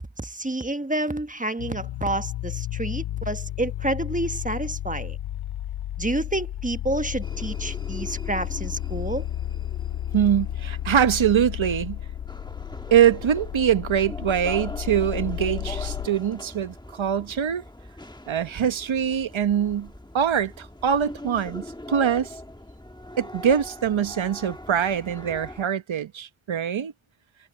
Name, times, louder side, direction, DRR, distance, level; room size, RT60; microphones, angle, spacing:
voice 1, 0.2-5.2 6.0-9.2, right 2 dB, 15° right, 1.3 m, -29 dB
sound 1, 1.6-16.1, left 12 dB, 90° left, 0.6 m, -32 dB
sound 2, 7.2-25.6, left 1 dB, 10° left, 1.3 m, -41 dB
voice 2, 10.1-12.0 12.9-17.6 18.3-19.9 20.1-22.3 23.2-26.9, right 9 dB, 75° right, 1.1 m, -23 dB
cardioid pair, 40°, 48 cm